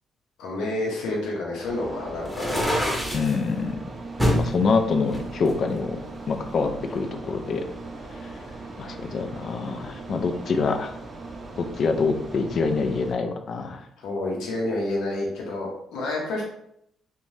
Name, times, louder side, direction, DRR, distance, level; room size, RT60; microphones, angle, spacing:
voice 1, 0.4-2.8 14.0-16.4, left 2 dB, 85° left, -2 dB, 0.6 m, -29 dB
sound 1, 1.6-13.1, right 3 dB, 40° right, 0.5 m, -39 dB
sound 2, 2.3-3.3 4.2-4.5 5.1-6.2, equal, ahead, 0.7 m, -25 dB
voice 2, 3.1-3.8 4.3-6.0 6.3-7.7 8.8-10.9 11.6-13.8, left 4 dB, 55° left, 7 dB, 0.3 m, -25 dB
2.6 x 2.1 x 3.1 m, 0.75 s
cardioid pair, 90°, 0 cm